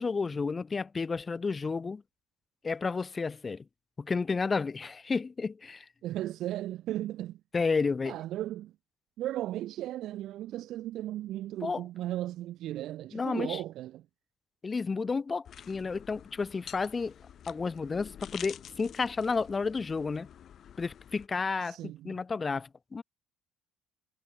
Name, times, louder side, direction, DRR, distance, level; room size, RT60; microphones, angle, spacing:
voice 1, 0.0-2.0 2.6-3.6 4.0-5.9 7.5-8.2 11.6-11.8 13.1-13.6 14.6-17.1 17.5-20.3 20.8-23.0, left 4 dB, 30° left, 0.4 m, -31 dB
voice 2, 6.0-7.4 8.0-8.7 9.2-14.0 21.6-22.2, right 14 dB, 65° right, 0.6 m, -36 dB
sound 1, 15.4-21.3, left 9 dB, 55° left, 1.7 m, -49 dB
hypercardioid pair, 65°, 0 cm